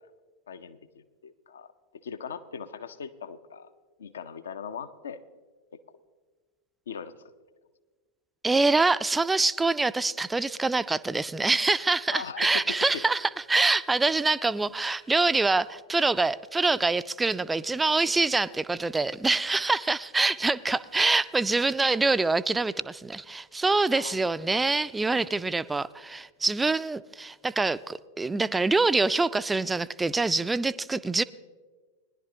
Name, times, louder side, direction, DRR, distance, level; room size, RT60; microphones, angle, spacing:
voice 1, 0.5-3.7 4.0-5.2 5.7-5.8 6.9-7.1 12.1-12.6 23.9-24.3, left 6 dB, 65° left, 12 dB, 0.6 m, -40 dB
voice 2, 8.4-31.2, right 3 dB, 10° right, 15 dB, 0.3 m, -25 dB
20.0 x 11.0 x 2.8 m, 1.4 s
figure-of-eight pair, 90°, 0 cm